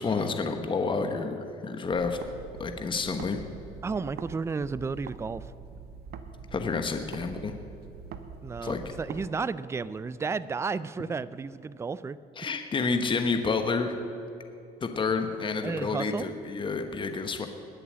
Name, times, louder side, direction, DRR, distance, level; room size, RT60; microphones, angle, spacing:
voice 1, 0.0-2.2 2.6-3.4 6.5-7.5 8.6-8.8 12.4-14.0 14.8-17.5, left 4 dB, 30° left, 6 dB, 1.2 m, -29 dB
sound 1, 1.9-4.3 4.6-9.3, right 6 dB, 70° right, 1.1 m, -44 dB
voice 2, 3.8-5.5 8.4-12.2 15.6-16.3, right 4 dB, 15° right, 17 dB, 0.4 m, -32 dB
19.5 x 6.9 x 8.7 m, 2.6 s
cardioid pair, 110°, 17 cm